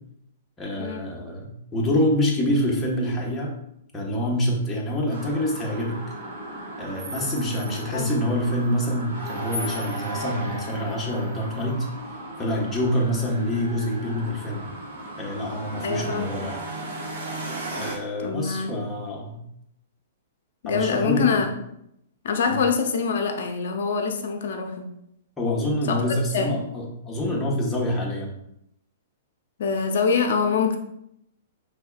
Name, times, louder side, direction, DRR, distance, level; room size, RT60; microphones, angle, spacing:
voice 1, 0.6-3.5 3.9-5.9 6.8-11.9 12.4-14.7 15.2-16.6 17.8-19.4 20.6-21.4 22.5-22.6 25.4-28.3, left 1 dB, 15° left, -3 dB, 1.2 m, -26 dB
sound 1, 5.1-17.9, right 1 dB, 65° right, 1.5 m, -35 dB
voice 2, 15.8-16.3 18.2-18.7 20.6-21.5 22.2-24.9 25.9-26.0 26.3-26.5 29.6-30.8, left 5 dB, 60° left, 4 dB, 0.6 m, -24 dB
5.4 x 3.3 x 2.3 m, 0.78 s
hypercardioid pair, 115°, 0 cm